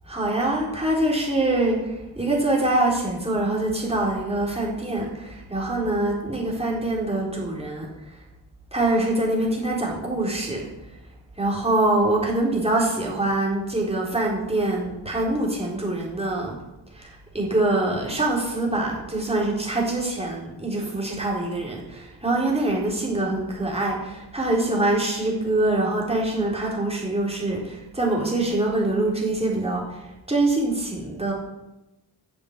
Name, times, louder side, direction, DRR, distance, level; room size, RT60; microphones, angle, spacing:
voice 1, 0.1-8.2 8.7-10.6 11.4-16.5 16.9-31.3, right 2 dB, 15° right, -3 dB, 4.1 m, -24 dB
11.0 x 7.2 x 8.3 m, 0.97 s
wide cardioid pair, 75°, 43 cm